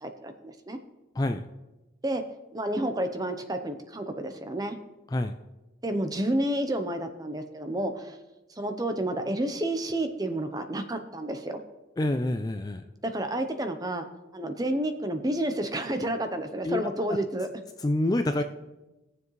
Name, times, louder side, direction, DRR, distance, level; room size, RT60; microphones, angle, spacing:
voice 1, 0.0-0.8 2.0-2.2 2.5-4.8 5.8-8.2 8.6-11.6 13.0-14.1 14.3-17.5, right 1 dB, 20° right, 7 dB, 0.7 m, -30 dB
voice 2, 12.0-12.8 16.6-16.8 17.8-18.4, left 1 dB, 20° left, 7 dB, 0.3 m, -27 dB
19.0 x 7.2 x 3.2 m, 1.0 s
head